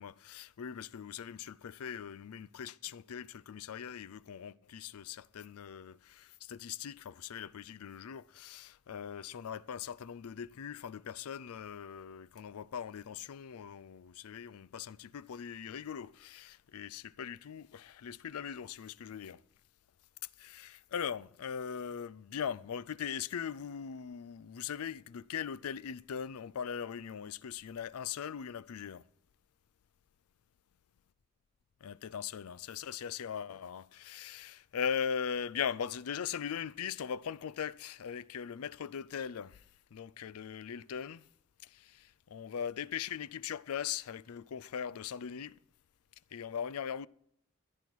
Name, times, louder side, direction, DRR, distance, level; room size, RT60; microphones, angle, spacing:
voice 1, 0.0-19.4 20.4-29.0 31.8-39.6 39.9-41.2 41.6-45.6 46.3-47.1, left 7 dB, 85° left, 0.4 m, -40 dB
14.5 x 10.0 x 4.6 m
head